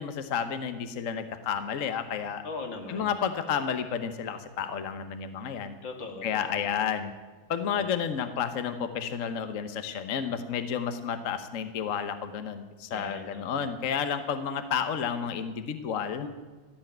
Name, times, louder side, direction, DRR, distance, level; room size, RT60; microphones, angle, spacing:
voice 1, 0.0-2.4 2.9-5.8 6.2-7.1 7.5-16.3, left 7 dB, 50° left, 9 dB, 1.1 m, -31 dB
voice 2, 2.4-3.1 5.8-6.7 7.7-7.9 12.9-13.6 16.2-16.3, left 3 dB, 70° left, 3 dB, 2.7 m, -40 dB
15.0 x 8.3 x 9.0 m, 1.4 s
omnidirectional pair, 2.1 m